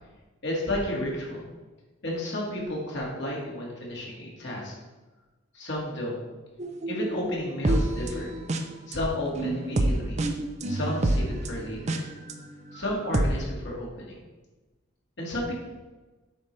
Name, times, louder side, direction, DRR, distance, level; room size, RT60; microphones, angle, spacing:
voice 1, 0.4-1.5 2.0-4.7 5.5-6.2 6.9-8.3 8.9-10.2 10.7-12.0 12.7-14.2 15.2-15.5, left 1 dB, 60° left, -3 dB, 2.0 m, -32 dB
sound 1, 6.6-8.9 9.3-12.3 12.8-13.3, right 2 dB, 35° right, 0.5 m, -27 dB
7.9 x 5.5 x 3.2 m, 1.2 s
head